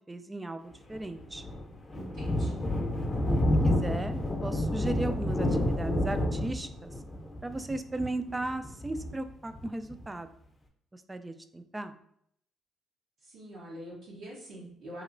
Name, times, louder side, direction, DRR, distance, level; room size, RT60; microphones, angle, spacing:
voice 1, 0.1-1.4 3.6-6.9 7.4-10.3 10.9-12.0, right 2 dB, 20° right, 10 dB, 0.3 m, -36 dB
Thunder, 0.9-10.0, left 1 dB, 30° left, 0.7 m, -30 dB
voice 2, 1.9-2.6 13.2-15.0, right 1 dB, 75° right, -7 dB, 0.9 m, -45 dB
3.0 x 2.8 x 2.5 m, 0.67 s
supercardioid pair, 65°, 0 cm